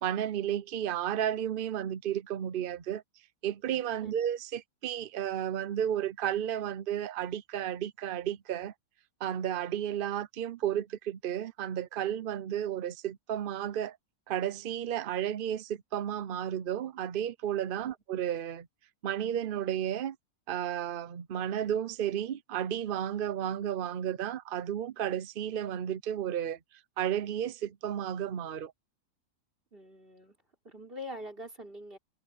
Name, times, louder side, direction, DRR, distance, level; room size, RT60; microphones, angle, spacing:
voice 1, 0.0-3.0 3.4-8.7 9.2-14.0 14.3-18.7 19.0-20.2 20.5-26.6 27.0-28.7, right 10 dB, 85° right, 0.4 m, -33 dB
voice 2, 29.7-30.4 30.6-32.0, left 1 dB, 30° right, 4.8 m, -44 dB
omnidirectional pair, 1.9 m